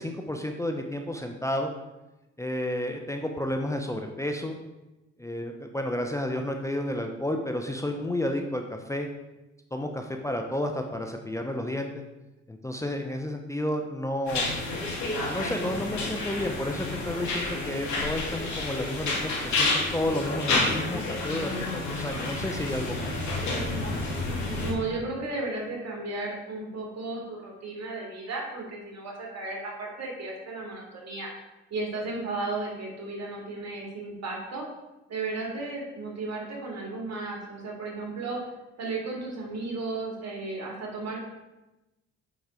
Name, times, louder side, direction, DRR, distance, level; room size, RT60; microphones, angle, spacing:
voice 1, 0.0-1.7 2.4-4.6 5.2-9.1 9.7-11.9 12.5-14.5 15.2-23.1, left 1 dB, 10° left, 3 dB, 0.7 m, -31 dB
sound 1, 14.3-24.7, left 2 dB, 70° left, 2.7 m, -30 dB
voice 2, 24.6-31.3 31.7-34.7 35.1-38.4 38.8-41.2, right 3 dB, 60° right, -2 dB, 2.7 m, -34 dB
8.2 x 3.9 x 5.1 m, 1.0 s
cardioid pair, 90°, 30 cm